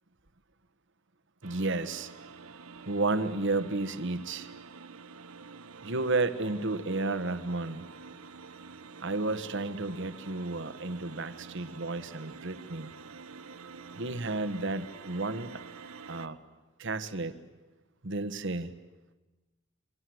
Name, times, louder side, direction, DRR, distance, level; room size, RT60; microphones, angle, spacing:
voice 1, 1.4-2.1 2.9-4.5 5.8-7.9 9.0-12.9 13.9-15.6 16.1-16.4 16.8-17.3 18.0-18.7, right 2 dB, 60° right, 11 dB, 1.5 m, -32 dB
sound 1, 1.4-16.3, right 5 dB, 80° right, 1.0 m, -48 dB
28.5 x 24.0 x 7.9 m, 1.2 s
head